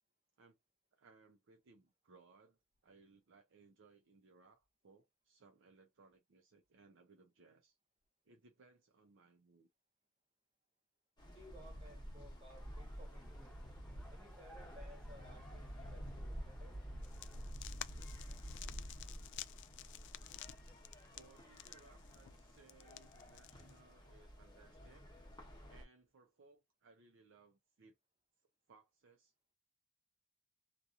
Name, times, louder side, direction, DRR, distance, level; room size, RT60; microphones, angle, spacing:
voice 1, 0.9-7.8 8.2-9.7 21.1-25.1 25.7-28.0 28.7-29.3, right 4 dB, 65° right, 0.5 m, -66 dB
sound 1, 11.2-25.8, equal, 20° left, 1.0 m, -50 dB
voice 2, 11.2-13.6 14.1-16.8, equal, 30° right, 1.5 m, -60 dB
sound 2, 12.5-17.5, right 1 dB, 5° left, 0.7 m, -62 dB
sound 3, 17.0-23.8, left 13 dB, 60° left, 0.3 m, -53 dB
2.8 x 2.3 x 2.4 m
head